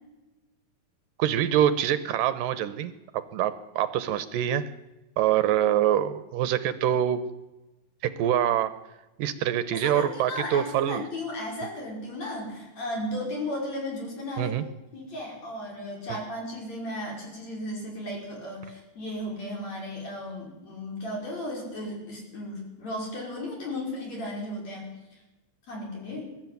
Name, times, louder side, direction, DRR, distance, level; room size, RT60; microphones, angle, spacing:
voice 1, 1.2-2.9 3.3-4.6 5.2-7.2 8.2-8.7 9.2-11.0 14.4-14.6 16.1-16.2, right 10 dB, 75° right, 13 dB, 2.4 m, -25 dB
voice 2, 9.8-14.6 14.9-24.9 25.7-26.3, left 1 dB, 50° left, 0 dB, 6.4 m, -35 dB
22.0 x 12.5 x 9.2 m, 1.1 s
omnidirectional pair, 4.1 m